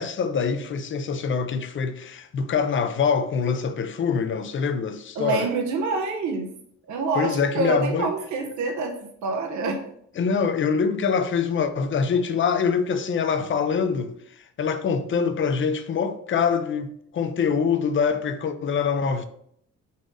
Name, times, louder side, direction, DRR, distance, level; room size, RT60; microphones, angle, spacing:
voice 1, 0.0-5.5 7.1-8.1 10.2-14.2 14.6-19.3, left 6 dB, 40° left, 0.5 m, -24 dB
voice 2, 5.2-6.5 6.9-9.0 9.2-9.9, right 4 dB, 70° right, 0.8 m, -26 dB
4.1 x 2.6 x 4.8 m
cardioid pair, 90°, 30 cm